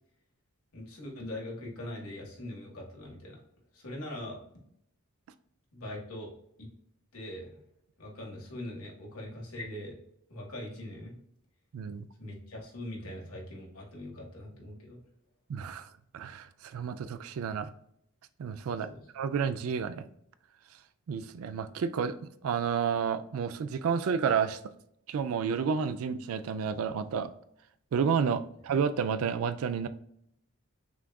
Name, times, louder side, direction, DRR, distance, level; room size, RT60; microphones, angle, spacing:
voice 1, 0.7-3.4 3.7-4.4 5.7-6.7 7.1-7.6 8.0-10.0 10.3-11.2 12.2-15.0 18.9-19.0, left 1 dB, 80° left, -2 dB, 1.5 m, -42 dB
voice 2, 11.7-12.1 15.5-15.9 16.1-17.7 18.4-18.9 19.1-20.1 21.1-24.6 25.1-27.3 27.9-29.9, right 6 dB, 75° right, 11 dB, 0.3 m, -30 dB
6.1 x 2.3 x 2.2 m, 0.71 s
head